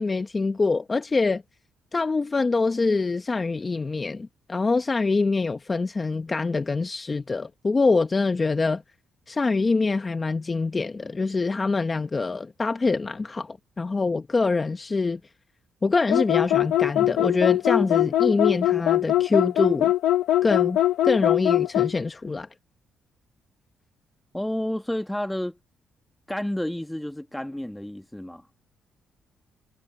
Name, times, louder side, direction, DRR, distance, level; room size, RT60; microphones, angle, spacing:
voice 1, 0.0-1.4 1.9-8.8 9.3-15.2 15.8-19.9 20.4-20.8 21.0-22.5, left 3 dB, 25° left, 0.9 m, -24 dB
sound 1, 16.1-22.0, left 13 dB, 80° left, 0.8 m, -21 dB
voice 2, 24.3-25.6 26.3-28.4, left 1 dB, 5° left, 1.7 m, -30 dB
cardioid pair, 90°, 0 cm